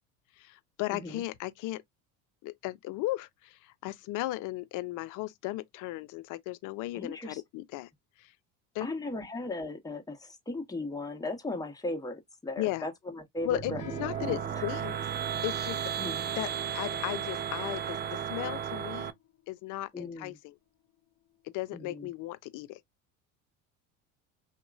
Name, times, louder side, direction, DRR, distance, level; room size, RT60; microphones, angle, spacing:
voice 1, 0.4-1.8 2.4-7.9 8.2-8.3 8.7-8.9 12.6-12.9 13.4-15.0 15.4-15.8 16.4-19.1 19.5-20.5 21.4-22.8, left 17 dB, 50° left, 0.5 m, -36 dB
voice 2, 0.9-1.3 6.9-7.4 8.8-13.8 14.2-14.4 16.0-16.3 19.9-20.4 21.7-22.1, left 2 dB, 10° left, 0.9 m, -37 dB
sound 1, 13.4-19.1, right 9 dB, 25° right, 0.4 m, -34 dB
sound 2, 13.8-21.6, left 10 dB, 70° left, 0.8 m, -55 dB
2.9 x 2.1 x 2.4 m
hypercardioid pair, 75°, 39 cm